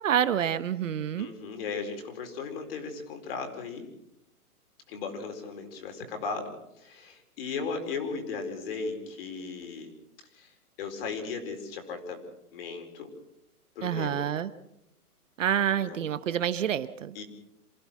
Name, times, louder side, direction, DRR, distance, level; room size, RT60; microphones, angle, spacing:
voice 1, 0.0-1.3 13.8-14.5 15.4-17.2, right 9 dB, 55° right, 13 dB, 1.1 m, -28 dB
voice 2, 1.2-3.9 4.9-9.9 10.3-12.2 12.5-13.1 13.7-14.2 15.8-16.0 17.1-17.2, left 4 dB, 40° left, 5 dB, 4.6 m, -36 dB
28.0 x 15.5 x 6.2 m, 0.80 s
hypercardioid pair, 160°, 45 cm